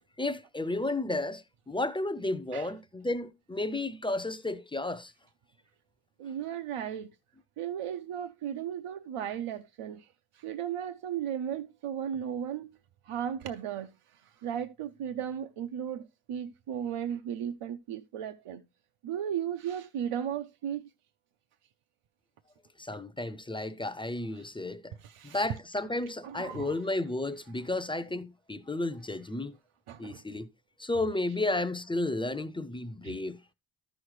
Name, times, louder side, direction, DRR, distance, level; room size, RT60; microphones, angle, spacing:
voice 1, 0.2-5.1 22.8-24.9 25.2-29.6 30.0-30.5 30.8-33.4, left 2 dB, 10° left, 0.4 m, -33 dB
voice 2, 6.2-7.1 7.6-10.1 10.3-12.7 13.0-18.6 19.0-20.9 25.0-25.4 26.2-26.8 29.9-30.2 33.0-33.2, right 9 dB, 90° right, 0.7 m, -36 dB
13.0 x 6.3 x 3.1 m
wide cardioid pair, 150°, 50 cm